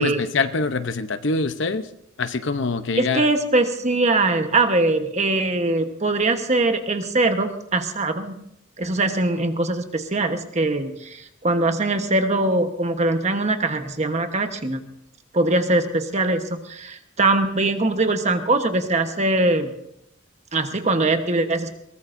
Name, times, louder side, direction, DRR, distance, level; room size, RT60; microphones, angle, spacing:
voice 1, 0.0-1.9 2.2-3.3, left 3 dB, 60° left, 10 dB, 0.8 m, -24 dB
voice 2, 3.0-8.4 8.8-14.8 15.3-19.7 20.5-21.7, right 2 dB, 35° right, 6 dB, 1.2 m, -22 dB
22.0 x 19.0 x 2.7 m, 0.78 s
head